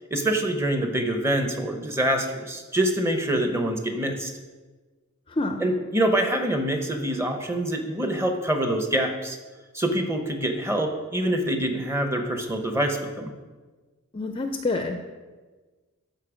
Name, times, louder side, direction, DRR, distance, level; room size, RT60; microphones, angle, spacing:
voice 1, 0.1-4.3 5.6-9.4 9.7-13.3, right 1 dB, 10° right, 4 dB, 0.9 m, -25 dB
voice 2, 5.3-5.6 14.1-15.0, left 2 dB, 25° left, 6 dB, 0.5 m, -27 dB
13.0 x 4.4 x 5.0 m, 1.3 s
head